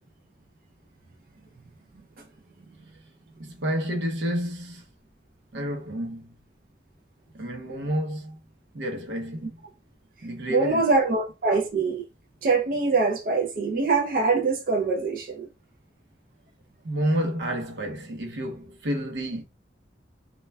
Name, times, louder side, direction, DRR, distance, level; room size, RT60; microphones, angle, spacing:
voice 1, 3.4-4.8 5.5-6.3 7.3-8.4 8.7-9.5 10.2-10.8 16.8-19.4, equal, 90° right, 0.7 m, -29 dB
voice 2, 10.5-12.0 12.4-15.5, right 4 dB, 50° right, 0.4 m, -23 dB
2.2 x 2.1 x 3.2 m
head